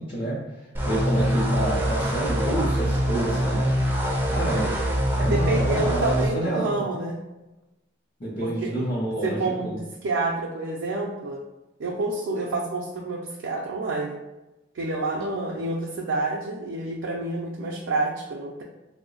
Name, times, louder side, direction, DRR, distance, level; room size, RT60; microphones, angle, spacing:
voice 1, 0.0-3.7 4.3-4.7 5.2-6.8 8.2-9.8, right 1 dB, 35° left, -7 dB, 0.6 m, -28 dB
sound 1, 0.7-6.3, equal, 10° right, 0.4 m, -24 dB
voice 2, 5.2-7.2 8.4-8.7 9.2-11.4 11.8-14.1 14.7-18.6, right 2 dB, 85° right, -1 dB, 0.4 m, -28 dB
3.1 x 2.0 x 3.8 m, 1.0 s
head